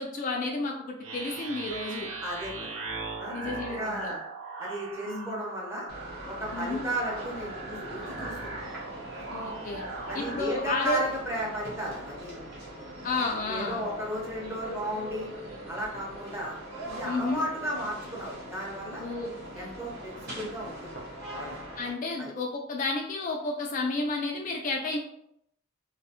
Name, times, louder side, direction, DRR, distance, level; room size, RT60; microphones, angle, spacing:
voice 1, 0.0-2.1 3.3-4.1 5.1-5.4 6.5-6.8 9.3-9.8 10.1-11.0 13.0-13.8 17.0-17.4 19.0-19.7 21.8-25.0, left 3 dB, 45° left, 1 dB, 0.3 m, -31 dB
sound 1, 1.0-10.5, right 3 dB, 85° right, 0.5 m, -39 dB
voice 2, 2.2-2.8 3.2-3.3 3.7-4.2 4.6-5.9 6.3-8.6 9.2-9.3 10.1-12.5 13.5-15.3 15.7-16.6 16.9-19.0 19.5-21.6 22.2-22.3, equal, 15° right, -4 dB, 0.7 m, -34 dB
sound 2, 5.9-21.9, right 1 dB, 55° right, 0.9 m, -42 dB
2.4 x 2.3 x 2.8 m, 0.76 s
head